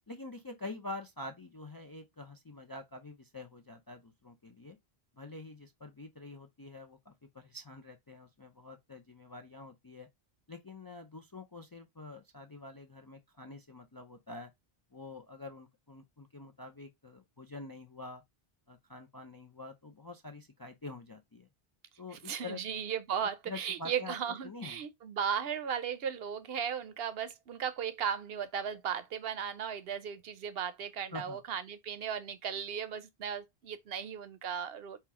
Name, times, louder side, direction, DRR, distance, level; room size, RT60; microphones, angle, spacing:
voice 1, 0.1-4.8 5.2-10.1 10.5-14.5 14.9-18.2 18.7-21.5 22.0-22.6 23.2-24.2 24.4-24.8 31.1-31.4, left 2 dB, 35° left, 0.3 m, -46 dB
voice 2, 22.1-35.0, right 8 dB, 70° right, 0.9 m, -36 dB
4.3 x 2.3 x 4.7 m
omnidirectional pair, 1.1 m